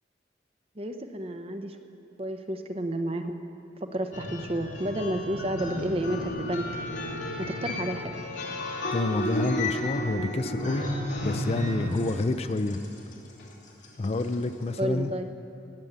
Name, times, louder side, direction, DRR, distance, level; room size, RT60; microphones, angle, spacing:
voice 1, 0.8-1.8 2.2-3.4 3.9-6.7 7.4-8.1 14.8-15.3, right 1 dB, 35° right, 7 dB, 0.8 m, -31 dB
sound 1, 4.1-14.4, left 1 dB, 85° left, 2.7 m, -33 dB
voice 2, 8.9-10.9 11.2-12.8 14.0-15.1, left 2 dB, 35° left, 10 dB, 0.4 m, -28 dB
19.5 x 7.1 x 8.1 m, 2.7 s
head